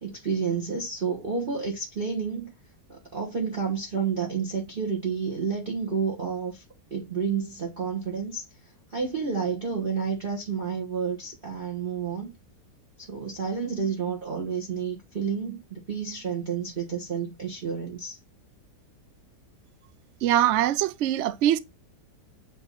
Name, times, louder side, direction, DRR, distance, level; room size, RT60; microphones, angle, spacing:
voice 1, 0.0-2.5 2.9-6.6 6.9-8.4 8.9-12.3 13.0-18.2, right 6 dB, 35° right, 1.3 m, -30 dB
voice 2, 20.2-21.6, right 12 dB, 80° right, 0.6 m, -22 dB
8.2 x 3.1 x 3.9 m
omnidirectional pair, 1.9 m